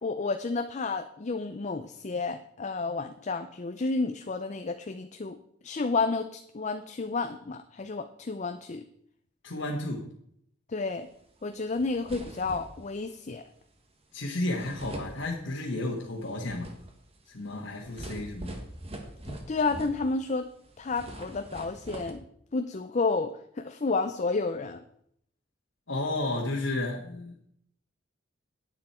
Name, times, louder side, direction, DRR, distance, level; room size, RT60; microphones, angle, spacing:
voice 1, 0.0-5.4 5.6-8.9 10.7-11.1 11.4-13.4 19.3-20.5 20.8-22.2 22.5-23.3 23.6-24.8, left 3 dB, 35° left, 8 dB, 0.5 m, -31 dB
voice 2, 9.4-10.1 14.1-16.7 17.3-18.6 25.9-27.3, left 2 dB, 70° left, -2 dB, 1.6 m, -32 dB
sound 1, 11.4-11.5 11.7-13.0 14.2-14.3 14.6-15.8 16.2-20.4 20.6-22.1, right 1 dB, 30° right, 1.6 m, -43 dB
10.5 x 9.1 x 4.4 m, 0.71 s
head